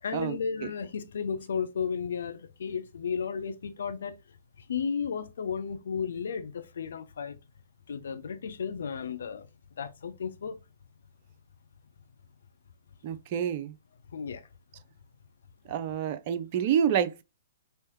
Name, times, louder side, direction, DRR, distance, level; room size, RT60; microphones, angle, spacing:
voice 1, 0.0-4.2 4.7-7.4 7.9-9.5 9.8-10.6 14.1-14.4, left 6 dB, 60° left, 0.7 m, -33 dB
voice 2, 13.0-13.7 15.7-17.2, right 9 dB, 40° right, 0.5 m, -28 dB
4.4 x 3.3 x 3.0 m
figure-of-eight pair, 115°, 0 cm